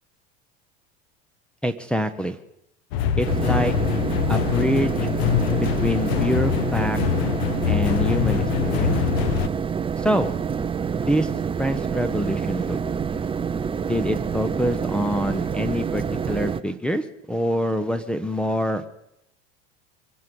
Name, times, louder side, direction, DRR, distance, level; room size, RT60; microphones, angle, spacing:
voice 1, 1.6-2.4 3.2-3.7 4.3-4.9 5.6-7.0 7.6-9.0 10.0-10.3 11.0-11.3 11.6-12.8 13.8-18.8, equal, 5° left, 5 dB, 1.0 m, -25 dB
sound 1, 2.9-9.5, left 9 dB, 75° left, 1.1 m, -24 dB
sound 2, 3.3-16.6, right 6 dB, 15° right, 0.7 m, -27 dB
24.0 x 9.6 x 5.4 m, 0.82 s
supercardioid pair, 105°, 32 cm